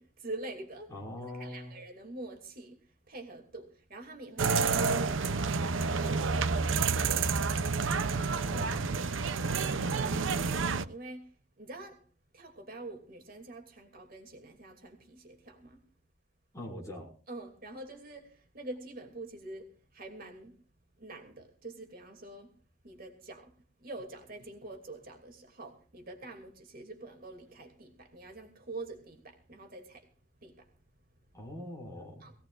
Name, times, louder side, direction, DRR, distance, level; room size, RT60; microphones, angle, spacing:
voice 1, 0.0-0.9 1.2-2.8 3.1-6.8 8.0-8.7 9.4-11.3 11.6-12.0 12.3-15.8 17.3-20.6 21.0-22.5 22.8-23.5 23.8-30.1 30.4-30.7 32.2-32.3, right 2 dB, 50° right, 2.8 m, -46 dB
voice 2, 0.9-1.8 8.5-8.8 16.5-17.1 31.3-32.2, left 1 dB, 15° left, 5.8 m, -42 dB
sound 1, 4.4-10.8, right 4 dB, 80° right, 0.7 m, -29 dB
22.0 x 17.5 x 2.6 m
head